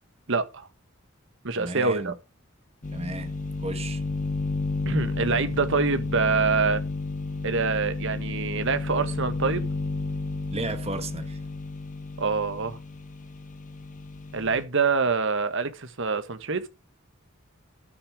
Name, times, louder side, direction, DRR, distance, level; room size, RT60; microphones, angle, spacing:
voice 1, 0.3-0.7 1.4-2.1 4.8-6.8 7.4-9.6 12.2-12.8 14.3-16.6, right 4 dB, 65° right, 1.3 m, -25 dB
voice 2, 1.6-2.2 2.9-3.3 3.6-4.0 10.5-11.4, right 2 dB, 30° right, 1.4 m, -34 dB
sound 1, 2.8-14.7, left 3 dB, 40° left, 1.2 m, -32 dB
12.5 x 6.1 x 4.9 m
head